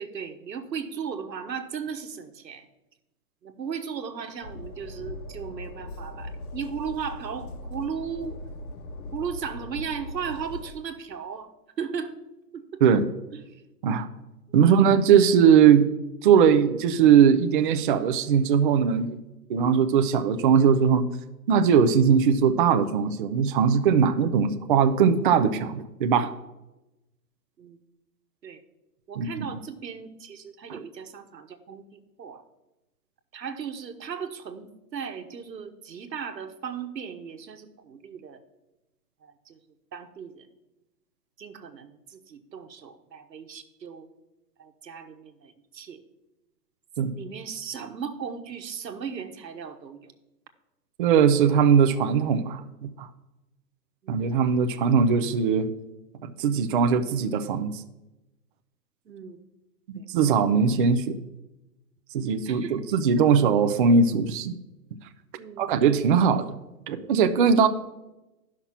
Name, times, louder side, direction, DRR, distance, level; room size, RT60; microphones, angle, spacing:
voice 1, 0.0-2.7 3.4-8.4 9.1-11.5 11.8-12.1 12.5-12.8 13.3-13.4 27.6-27.8 28.4-28.6 29.1-32.4 33.3-38.4 39.2-39.6 39.9-40.5 41.4-44.1 44.6-46.0 47.1-50.1 54.0-54.2 59.1-59.4 60.0-60.1 62.4-62.8 63.2-63.3 65.4-65.7, right 7 dB, 85° right, 7 dB, 1.3 m, -36 dB
Train, 4.4-10.7, left 2 dB, 65° left, 1.4 m, -39 dB
voice 2, 14.5-15.9 16.2-19.2 19.5-21.0 21.5-26.3 29.2-29.5 30.7-30.8 47.0-47.1 51.0-53.1 54.1-55.7 56.2-57.8 60.1-61.2 62.1-64.5 65.6-66.6 66.9-67.7, right 7 dB, 35° right, 7 dB, 0.5 m, -20 dB
11.0 x 5.9 x 5.8 m, 0.99 s
hypercardioid pair, 135°, 49 cm